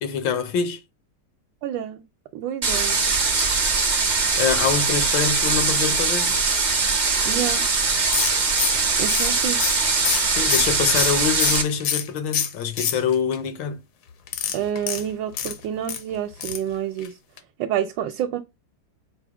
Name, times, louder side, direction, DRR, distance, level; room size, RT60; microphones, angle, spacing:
voice 1, 0.0-0.8 4.4-6.4 10.3-13.8, left 7 dB, 80° left, 1.5 m, -25 dB
voice 2, 1.6-2.0 2.3-3.0 7.2-7.7 9.0-9.7 14.5-17.2 17.6-18.4, right 10 dB, 80° right, 1.3 m, -28 dB
sound 1, 2.6-11.6, right 4 dB, 60° right, 0.4 m, -21 dB
sound 2, 8.1-12.1 12.3-13.3 14.3-16.0 16.4-16.7 17.0-17.1 17.4-17.5, left 8 dB, 65° left, 0.9 m, -26 dB
4.8 x 2.1 x 4.7 m
omnidirectional pair, 2.0 m